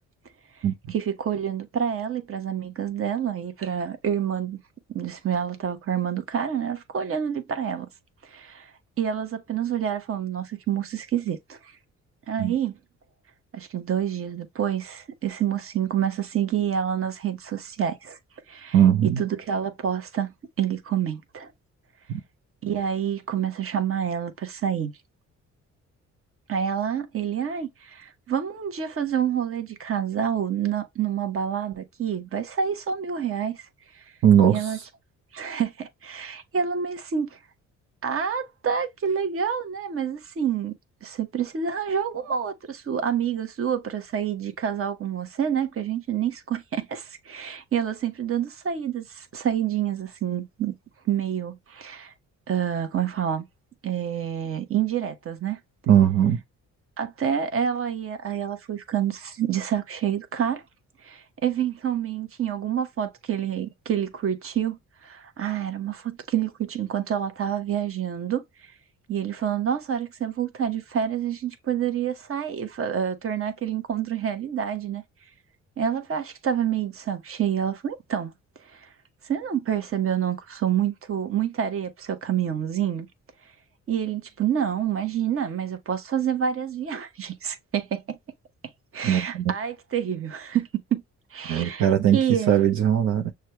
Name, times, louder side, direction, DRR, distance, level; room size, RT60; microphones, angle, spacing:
voice 1, 0.9-4.6 4.9-7.9 8.3-11.7 12.3-12.8 13.5-18.2 18.5-18.8 19.2-20.3 20.6-21.5 22.6-24.9 26.5-33.7 33.9-34.0 34.5-34.8 35.3-37.4 38.0-40.7 41.0-50.7 51.1-52.1 52.5-53.4 53.8-55.6 57.0-60.6 61.0-68.7 69.1-75.0 75.8-78.3 78.6-78.9 79.2-83.1 83.9-88.2 88.9-91.0 91.3-91.9 92.1-92.8, right 8 dB, 45° right, 1.1 m, -28 dB
voice 2, 18.7-19.2 34.2-34.8 55.9-56.4 89.0-89.5 91.5-93.3, right 10 dB, 70° right, 0.9 m, -20 dB
6.4 x 2.3 x 3.0 m
cardioid pair, 90°, 30 cm